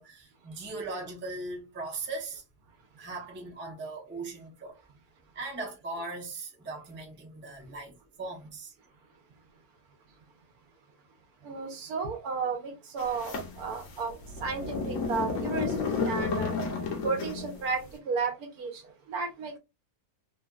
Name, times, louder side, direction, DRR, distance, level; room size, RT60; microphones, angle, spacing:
voice 1, 0.0-2.4 3.0-4.8 5.3-8.7, right 3 dB, 15° right, 0.5 m, -39 dB
voice 2, 11.4-16.5 17.0-19.6, right 5 dB, 80° right, 1.3 m, -33 dB
sound 1, 13.0-17.7, left 4 dB, 65° left, 1.1 m, -32 dB
3.2 x 2.2 x 2.3 m
omnidirectional pair, 1.6 m